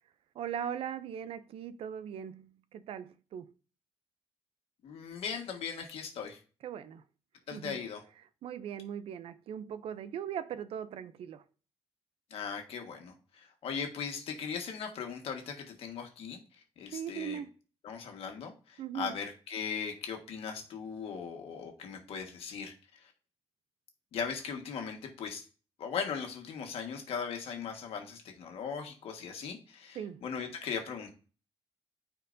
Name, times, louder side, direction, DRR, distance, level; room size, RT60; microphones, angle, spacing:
voice 1, 0.3-3.5 6.6-7.0 7.5-7.8 8.4-11.4 16.9-17.5 18.8-19.1 29.9-30.2, right 9 dB, 75° right, 0.5 m, -39 dB
voice 2, 4.8-6.4 7.5-8.0 12.3-16.4 16.8-17.4 17.8-23.1 24.1-25.4 25.8-31.1, left 6 dB, 80° left, 1.6 m, -39 dB
13.0 x 4.5 x 2.7 m
cardioid pair, 125°, 10 cm